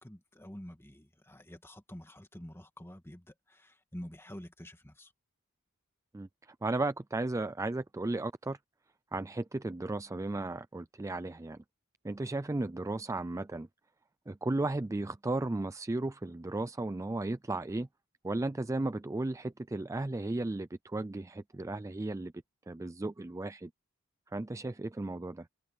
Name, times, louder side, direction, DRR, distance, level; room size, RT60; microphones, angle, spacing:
voice 1, 0.0-5.1, equal, 10° left, 2.2 m, -48 dB
voice 2, 6.1-8.6 9.1-11.6 12.0-13.7 14.3-17.9 18.2-22.3 22.7-23.7 24.3-25.5, right 2 dB, 15° right, 0.3 m, -35 dB
head